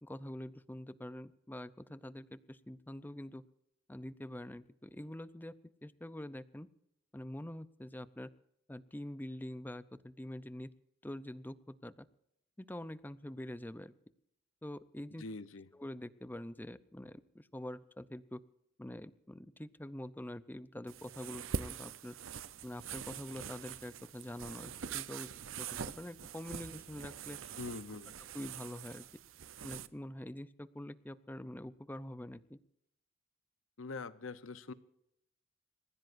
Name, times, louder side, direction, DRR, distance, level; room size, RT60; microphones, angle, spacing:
voice 1, 0.0-3.4 3.9-5.6 5.8-6.7 7.1-8.3 8.7-10.7 11.0-12.1 12.6-13.9 14.6-15.2 15.7-18.4 18.8-22.2 22.6-25.3 25.6-27.4 28.3-29.1 29.6-32.6, left 1 dB, 10° left, 15 dB, 0.6 m, -45 dB
voice 2, 15.2-15.7 27.6-28.1 33.8-34.7, left 3 dB, 80° left, 14 dB, 0.9 m, -43 dB
sound 1, 20.9-29.9, right 7 dB, 90° right, 0.7 m, -44 dB
28.0 x 15.5 x 2.6 m, 0.78 s
head